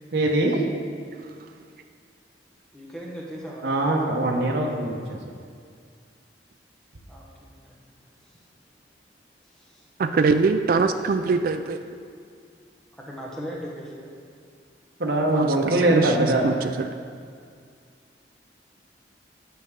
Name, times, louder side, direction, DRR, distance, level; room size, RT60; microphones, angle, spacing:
voice 1, 0.1-0.6 3.6-5.2 15.0-16.4, right 2 dB, 70° right, -1 dB, 0.9 m, -22 dB
voice 2, 2.7-3.8 7.1-7.6 8.2-8.4 9.5-9.9 12.9-14.1, equal, 5° left, -4 dB, 1.1 m, -38 dB
voice 3, 10.0-11.8 15.3-16.9, right 4 dB, 50° right, 8 dB, 0.3 m, -23 dB
10.0 x 6.7 x 3.6 m, 2.2 s
head